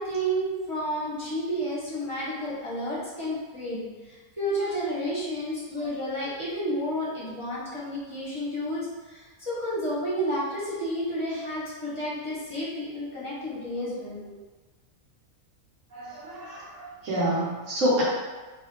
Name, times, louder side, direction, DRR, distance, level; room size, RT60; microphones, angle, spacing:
voice 1, 0.0-14.2, equal, 20° left, -7 dB, 1.2 m, -31 dB
voice 2, 15.9-18.0, right 1 dB, 60° right, -6 dB, 1.6 m, -28 dB
4.6 x 3.0 x 3.3 m, 1.3 s
omnidirectional pair, 1.5 m